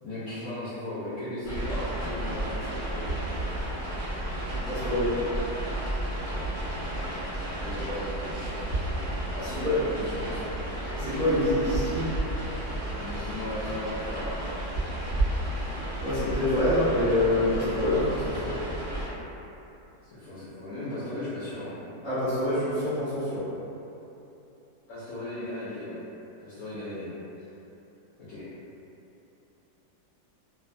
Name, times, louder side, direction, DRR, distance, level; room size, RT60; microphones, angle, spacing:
voice 1, 0.0-3.3 7.5-8.9 9.3-10.5 12.9-14.4 18.0-18.6 20.0-21.7 24.9-26.0 26.4-27.1 28.2-28.4, left 1 dB, 70° left, -12 dB, 0.7 m, -37 dB
sound 1, 1.4-19.1, right 1 dB, 15° left, 0.7 m, -32 dB
voice 2, 4.6-5.2 9.6-9.7 10.9-12.1 16.0-18.0 22.0-23.5, left 1 dB, 30° right, -16 dB, 0.7 m, -26 dB
2.7 x 2.2 x 2.4 m, 2.9 s
omnidirectional pair, 1.8 m